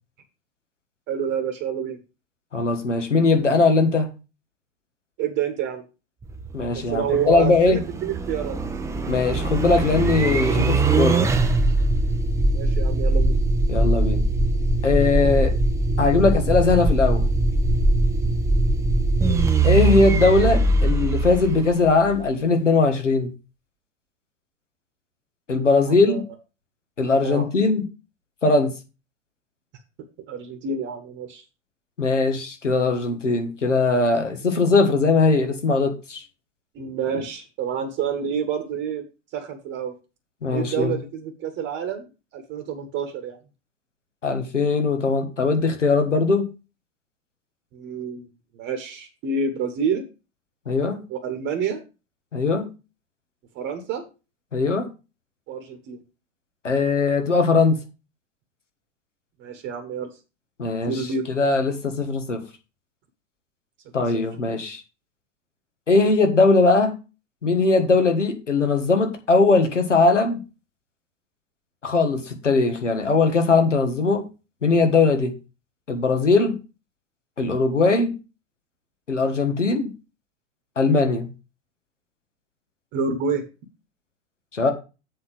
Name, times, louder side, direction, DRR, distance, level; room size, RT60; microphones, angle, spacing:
voice 1, 1.1-2.0 5.2-5.8 6.9-8.6 12.5-13.4 19.2-19.6 25.9-26.2 27.2-27.5 30.3-31.4 36.7-39.0 39.3-39.9 40.5-42.1 42.3-43.4 47.7-48.3 48.5-50.0 51.1-51.8 53.5-54.0 55.5-56.0 59.4-60.1 60.9-61.3 64.0-64.1 82.9-83.4, right 6 dB, 30° right, 5 dB, 1.3 m, -28 dB
voice 2, 2.5-4.1 6.5-7.8 9.1-11.2 13.7-14.2 14.8-15.5 16.0-17.3 19.6-23.3 25.5-26.2 27.0-27.8 28.4-28.7 32.0-36.2 40.4-40.9 44.2-46.5 50.7-51.0 52.3-52.7 54.5-54.9 56.6-57.8 60.6-61.0 61.3-62.4 63.9-64.8 65.9-66.9 67.4-70.4 71.8-74.3 74.6-75.3 75.9-76.5 77.4-78.1 79.1-79.9 80.8-81.3 84.5-84.7, left 3 dB, 80° left, 5 dB, 1.6 m, -20 dB
sound 1, 6.2-22.2, right 2 dB, 10° right, 0.6 m, -21 dB
7.6 x 4.1 x 6.8 m, 0.31 s
figure-of-eight pair, 90°, 37 cm